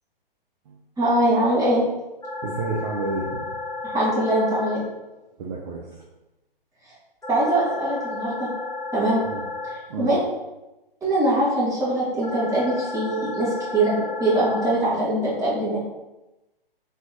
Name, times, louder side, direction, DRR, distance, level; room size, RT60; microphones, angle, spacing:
voice 1, 1.0-1.8 3.8-4.8 7.3-8.5 8.9-9.2 10.0-10.2 11.0-13.9 14.2-15.8, right 1 dB, 10° right, -7 dB, 1.5 m, -22 dB
sound 1, 2.2-4.7 7.2-9.7 12.2-14.7, left 3 dB, 10° left, 1.2 m, -33 dB
voice 2, 2.4-3.5 5.4-6.0 9.2-9.4 9.9-10.1, right 3 dB, 45° right, -1 dB, 0.6 m, -30 dB
4.0 x 2.9 x 4.0 m, 1.0 s
figure-of-eight pair, 125°, 29 cm